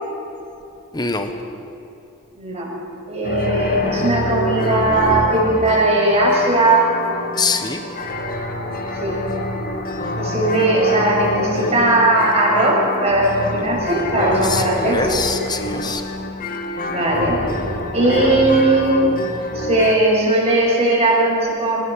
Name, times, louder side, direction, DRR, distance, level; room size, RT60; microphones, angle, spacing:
voice 1, 0.9-1.3 7.4-7.8 14.4-16.1, left 4 dB, 20° left, 6 dB, 1.4 m, -24 dB
voice 2, 2.3-2.7 3.1-6.9 9.0-9.2 10.2-15.2 16.9-17.4 17.9-19.0 19.5-21.9, right 2 dB, 30° right, -3 dB, 6.7 m, -18 dB
sound 1, 3.2-20.0, left 1 dB, 40° left, 2.0 m, -26 dB
26.0 x 19.0 x 7.2 m, 3.0 s
head